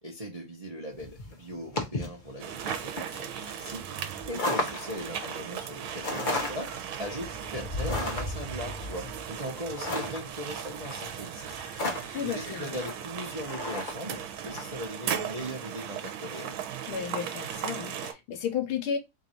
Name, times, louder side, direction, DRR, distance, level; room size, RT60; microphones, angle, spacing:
voice 1, 0.0-3.8 4.3-6.7 7.0-11.6 12.2-16.6, equal, 35° right, 0.6 m, -39 dB
sound 1, 1.0-14.7, left 2 dB, 55° left, 0.5 m, -35 dB
sound 2, 2.4-18.1, right 9 dB, 75° right, 1.5 m, -37 dB
voice 2, 12.1-12.8 16.9-19.0, left 7 dB, 75° left, 1.7 m, -33 dB
3.8 x 2.6 x 4.3 m
omnidirectional pair, 2.4 m